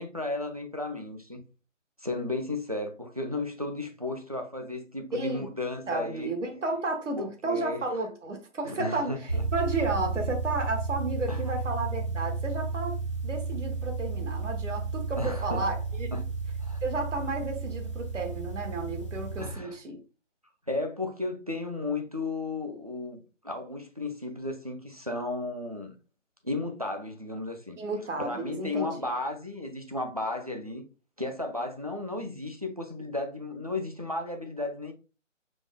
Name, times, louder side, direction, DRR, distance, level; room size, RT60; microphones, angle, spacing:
voice 1, 0.0-1.4 2.0-6.3 7.2-7.8 8.6-9.4 11.3-11.4 15.2-15.6 16.1-16.3 16.6-16.8 19.4-19.8 20.7-25.9 26.4-27.8 28.2-30.8 31.2-34.9, left 2 dB, 30° right, 0.4 m, -34 dB
voice 2, 5.1-5.5 5.9-13.0 13.2-16.1 16.8-20.0 27.7-29.1, right 2 dB, 70° right, 1.5 m, -32 dB
sound 1, 9.3-19.5, right 4 dB, 25° left, 0.5 m, -32 dB
5.0 x 2.1 x 3.6 m
figure-of-eight pair, 165°, 38 cm